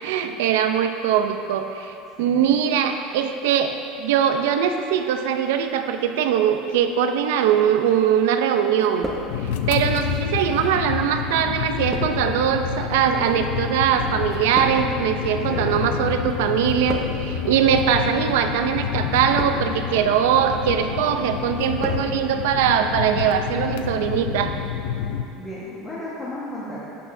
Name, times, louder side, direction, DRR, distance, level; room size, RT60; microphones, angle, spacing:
voice 1, 0.0-9.1 9.7-24.5, right 8 dB, 85° right, 6 dB, 0.6 m, -21 dB
voice 2, 2.2-2.5 15.5-15.9 17.4-17.8 25.3-26.8, left 1 dB, 15° left, -9 dB, 1.5 m, -34 dB
sound 1, 7.9-8.5 8.7-9.8 10.5-16.1 16.4-17.4 18.1-18.4 19.1-19.9 20.3-20.8 21.2-22.1 22.4-22.5, right 1 dB, 5° right, 0.9 m, -36 dB
sound 2, 9.3-25.2, left 8 dB, 85° left, 0.5 m, -28 dB
12.0 x 8.5 x 2.7 m, 2.7 s
cardioid pair, 170°, 0 cm